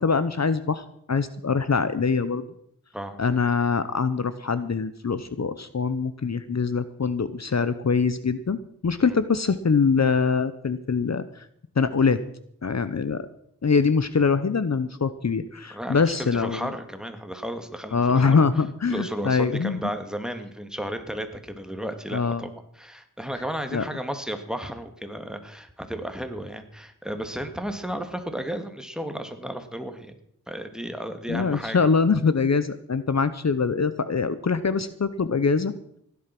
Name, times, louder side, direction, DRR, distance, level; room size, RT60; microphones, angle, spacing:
voice 1, 0.0-2.4 3.2-11.5 11.8-12.2 12.6-13.3 13.6-16.7 17.9-19.8 22.1-22.5 23.7-23.8 31.3-35.7, left 5 dB, 55° left, 13 dB, 0.9 m, -23 dB
voice 2, 15.7-18.4 18.9-22.5 22.8-30.1 30.5-31.8, equal, ahead, 6 dB, 2.1 m, -33 dB
16.0 x 11.0 x 6.0 m, 0.70 s
wide cardioid pair, 55°, 32 cm